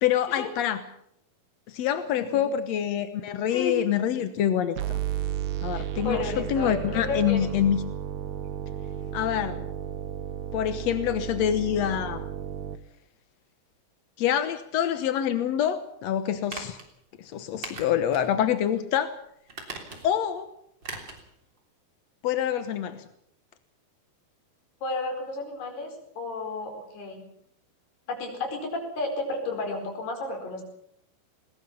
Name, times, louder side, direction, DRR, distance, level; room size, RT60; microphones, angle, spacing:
voice 1, 0.0-0.8 1.7-5.0 5.6-7.8 9.1-9.7 10.5-12.3 14.2-16.8 17.2-19.1 20.0-20.5 22.2-23.0, left 10 dB, 70° left, 10 dB, 1.6 m, -26 dB
sound 1, 4.8-12.8, right 10 dB, 70° right, 2.7 m, -33 dB
voice 2, 5.7-7.5 24.8-25.9 26.2-27.3 28.1-30.6, left 3 dB, 90° left, 3 dB, 6.7 m, -32 dB
sound 2, 16.5-16.9 17.6-18.3 18.7-18.8 19.5-20.2 20.8-21.2 21.6-21.7, right 3 dB, 30° right, 3.7 m, -39 dB
20.5 x 20.5 x 7.2 m, 0.72 s
omnidirectional pair, 4.5 m